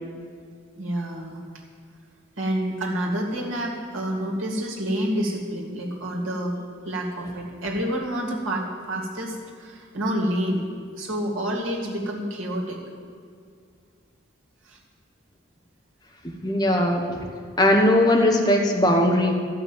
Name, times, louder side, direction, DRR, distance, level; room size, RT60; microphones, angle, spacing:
voice 1, 0.8-1.4 2.4-6.6 6.8-10.7 11.0-12.8 14.6-14.8, equal, 85° right, -1 dB, 2.2 m, -28 dB
voice 2, 16.2-17.3 17.6-19.3, left 1 dB, 20° left, 1 dB, 1.1 m, -19 dB
12.5 x 5.9 x 8.8 m, 2.2 s
head